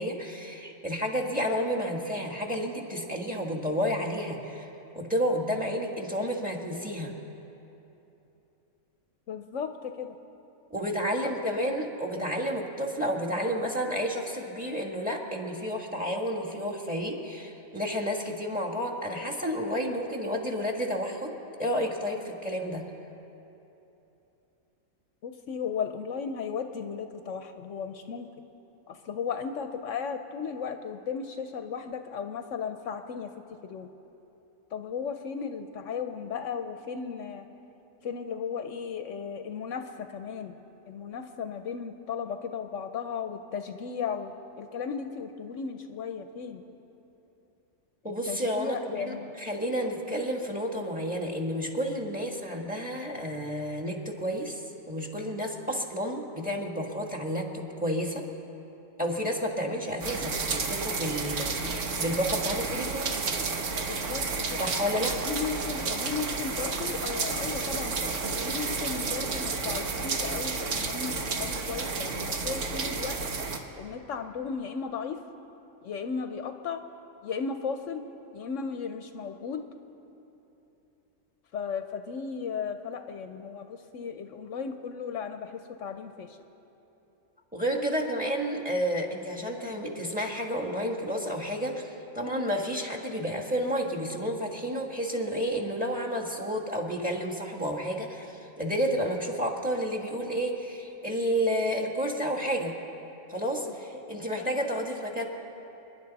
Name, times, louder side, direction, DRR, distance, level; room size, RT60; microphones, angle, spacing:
voice 1, 0.0-4.7 4.9-7.1 10.7-21.3 21.6-22.9 48.0-58.2 59.0-63.1 64.6-65.2 87.5-102.7 103.3-105.3, equal, 5° right, 1 dB, 1.4 m, -31 dB
voice 2, 9.3-10.1 11.0-11.1 11.6-11.7 12.1-12.3 25.2-28.3 28.9-33.3 33.6-33.9 34.7-37.5 38.0-40.5 40.9-46.6 48.3-49.3 63.9-64.2 64.5-64.6 65.2-73.2 73.8-75.2 75.8-76.8 77.2-78.0 78.3-79.6 81.5-86.4 103.6-103.7 104.4-104.6, left 6 dB, 70° left, 7 dB, 1.0 m, -35 dB
sound 1, 60.0-73.6, right 4 dB, 65° right, 1.4 m, -31 dB
29.0 x 10.5 x 4.1 m, 3.0 s
omnidirectional pair, 1.4 m